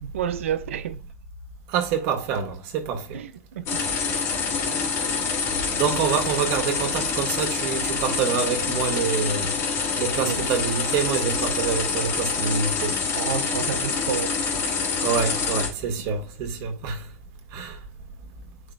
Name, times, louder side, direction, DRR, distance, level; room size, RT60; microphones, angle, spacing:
voice 1, 0.0-1.0 3.1-4.0 10.2-10.5 13.1-14.4, right 8 dB, 65° right, 0.7 m, -30 dB
voice 2, 1.7-3.2 5.8-9.5 10.0-12.9 15.0-17.0 17.5-17.8, right 7 dB, 45° right, 1.9 m, -26 dB
sound 1, 3.7-15.7, left 5 dB, 35° left, 2.5 m, -26 dB
10.0 x 3.9 x 2.5 m
figure-of-eight pair, 95°, 8 cm